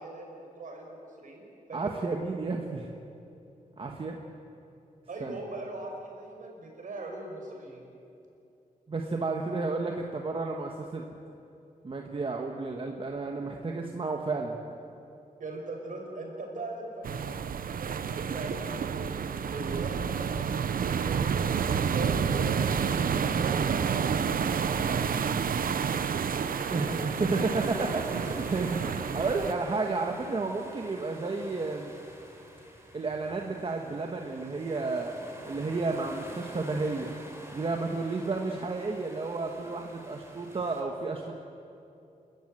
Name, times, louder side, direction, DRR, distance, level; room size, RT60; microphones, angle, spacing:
voice 1, 0.0-1.4 1.7-1.8 5.1-7.9 15.4-17.1 17.8-19.1 19.5-20.5 21.0-21.5 21.9-25.6 26.9-27.3 27.5-27.7, right 2 dB, 65° right, 1 dB, 5.4 m, -40 dB
voice 2, 1.7-2.9 3.8-4.2 5.2-5.4 8.9-11.0 11.8-14.6 19.6-19.9 26.7-31.9 32.9-35.1 35.4-37.1 37.5-41.4, right 3 dB, 40° right, 2 dB, 1.5 m, -32 dB
sound 1, 17.0-29.5, right 7 dB, 80° right, 0.9 m, -29 dB
sound 2, 22.3-40.8, right 1 dB, 20° right, 3.7 m, -48 dB
29.0 x 14.0 x 9.1 m, 2.7 s
wide cardioid pair, 130°, 14 cm